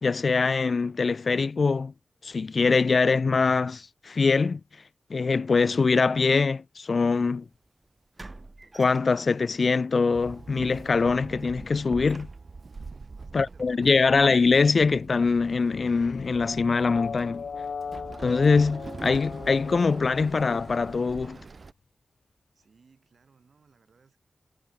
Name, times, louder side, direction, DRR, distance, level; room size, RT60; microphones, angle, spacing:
voice 1, 0.0-1.9 2.2-4.6 5.1-7.4 8.8-12.3 13.3-17.4 18.2-21.4, left 4 dB, 55° left, 0.3 m, -23 dB
sound 1, 7.1-7.2 8.2-9.6 10.0-10.2 10.7-12.8, right 2 dB, 25° right, 1.6 m, -46 dB
Walk footsteps / Chatter / Hiss, 10.1-21.7, right 4 dB, 45° right, 0.4 m, -44 dB
voice 2, 12.8-13.9 22.5-24.2, right 5 dB, 65° right, 5.9 m, -62 dB
sound 2, 15.7-21.2, left 6 dB, 85° left, 1.4 m, -39 dB
wide cardioid pair, 120°, 0 cm